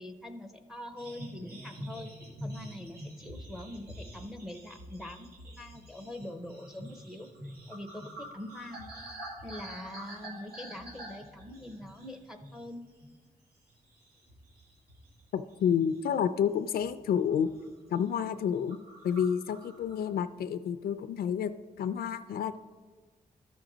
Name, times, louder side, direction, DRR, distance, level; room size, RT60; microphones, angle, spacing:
voice 1, 0.0-2.1 2.4-5.3 5.6-7.3 7.7-8.9 9.4-12.9, left 1 dB, 5° right, 5 dB, 0.5 m, -43 dB
sound 1, 1.0-12.7 13.0-13.3 13.7-15.2 15.5-16.3 16.8-17.0 17.3-17.7 18.0-18.1 18.3-18.4 18.7-20.1, right 1 dB, 85° right, 2.0 m, -46 dB
voice 2, 15.3-17.5 17.9-18.8 19.0-21.5 21.8-22.6, left 8 dB, 80° left, 11 dB, 0.4 m, -29 dB
13.0 x 6.1 x 3.9 m, 1.3 s
wide cardioid pair, 170°, 16 cm